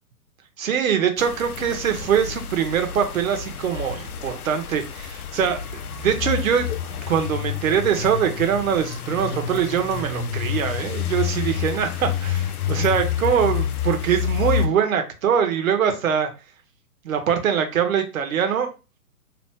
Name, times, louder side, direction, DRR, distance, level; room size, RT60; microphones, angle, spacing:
voice 1, 0.6-6.7 7.1-16.3 17.0-18.7, right 8 dB, 60° right, 6 dB, 1.0 m, -23 dB
sound 1, 1.2-14.7, left 9 dB, 70° left, 0.6 m, -28 dB
2.9 x 2.4 x 3.5 m, 0.31 s
hypercardioid pair, 130°, 46 cm